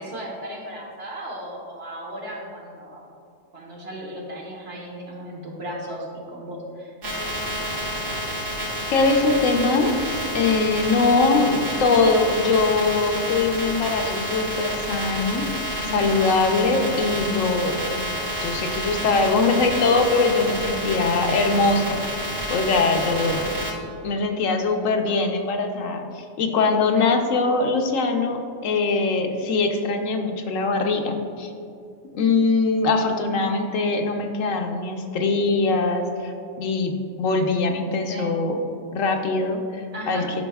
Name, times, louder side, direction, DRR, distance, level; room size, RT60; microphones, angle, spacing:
voice 1, 0.0-3.1 3.5-7.0 15.8-16.2 20.5-20.6 26.9-27.2 38.1-38.4 39.9-40.3, right 1 dB, 55° right, -2 dB, 1.5 m, -36 dB
sound 1, 7.0-23.7, equal, 80° right, 1.9 m, -29 dB
voice 2, 8.6-15.6 15.9-17.8 18.4-23.4 24.0-31.5 32.1-36.9 37.2-38.6 38.9-40.2, left 3 dB, 85° left, 4 dB, 1.1 m, -22 dB
11.0 x 5.4 x 2.3 m, 2.5 s
omnidirectional pair, 1.3 m